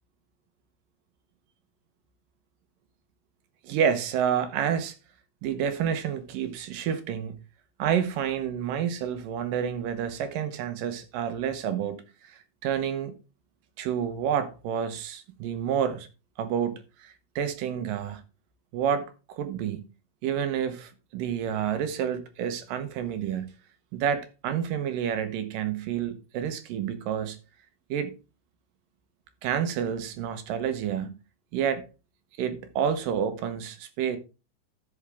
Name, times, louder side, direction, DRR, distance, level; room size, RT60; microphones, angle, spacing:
voice 1, 3.6-5.0 5.4-7.4 7.8-12.0 12.3-13.2 13.8-16.1 16.4-18.2 18.7-19.8 20.2-23.5 23.9-27.4 27.9-28.1 29.4-31.1 31.5-31.9 32.4-34.2, right 8 dB, 70° right, 2.5 m, -29 dB
13.5 x 6.3 x 3.4 m
omnidirectional pair, 4.3 m